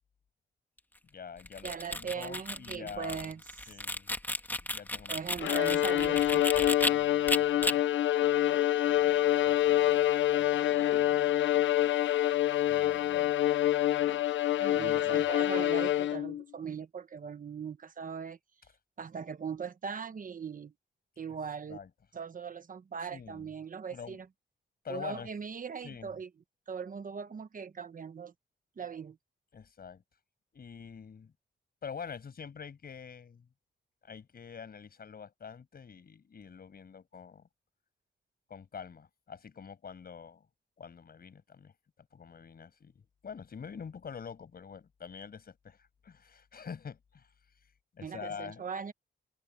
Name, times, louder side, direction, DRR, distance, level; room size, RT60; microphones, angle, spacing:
voice 1, 1.1-3.3 3.7-4.1 4.6-5.3 6.6-8.1 8.9-10.1 10.4-11.4 12.5-13.4 14.7-15.2 21.7-21.9 23.1-23.5 23.9-24.2 24.8-25.3 25.8-26.1 29.5-30.0 30.5-31.3 31.8-33.5 34.0-37.5 38.5-40.5 40.8-41.7 42.0-47.3 47.9-48.6, left 6 dB, 55° left, 6.5 m, -46 dB
sound 1, 1.4-6.9 7.3-7.7, left 1 dB, 10° left, 2.3 m, -33 dB
voice 2, 1.6-3.7 5.1-6.5 14.6-18.4 19.0-20.7 21.2-21.8 22.1-24.3 24.9-26.3 26.7-28.3 28.8-29.2 48.0-48.9, right 6 dB, 45° right, 1.2 m, -40 dB
Bowed string instrument, 5.4-16.4, left 13 dB, 85° left, 0.6 m, -26 dB
open air
cardioid pair, 110°, 19 cm